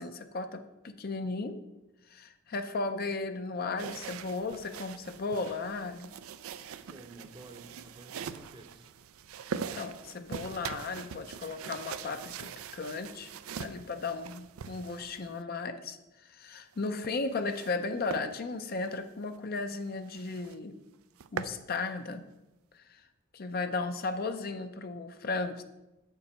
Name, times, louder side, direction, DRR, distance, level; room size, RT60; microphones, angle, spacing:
voice 1, 0.0-1.6 2.1-6.1 9.5-13.3 13.6-20.7 21.3-22.2 22.7-23.0 23.3-25.6, left 3 dB, 45° left, 8 dB, 0.5 m, -35 dB
sound 1, 3.8-15.4 16.7-17.8 18.1-18.3 18.8-18.9 19.3-19.4 19.7-19.8 20.1-20.6 20.9-21.6, right 7 dB, 90° right, 0.4 m, -42 dB
voice 2, 6.9-8.9, right 2 dB, 25° right, 6 dB, 0.7 m, -52 dB
8.2 x 6.9 x 4.4 m, 0.98 s
head